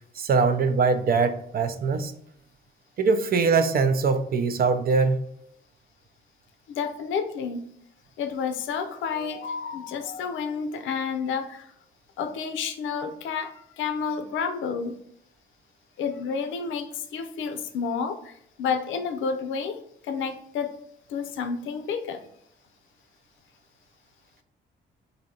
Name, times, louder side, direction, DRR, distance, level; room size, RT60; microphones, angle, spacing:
voice 1, 0.2-2.1 3.0-5.1, right 4 dB, 50° right, 0.6 m, -22 dB
voice 2, 6.7-7.7 8.2-11.7 12.2-15.0 16.0-18.3 18.6-20.7 21.1-22.2, left 6 dB, 80° left, 0.6 m, -30 dB
4.0 x 2.7 x 4.2 m
cardioid pair, 90°, 20 cm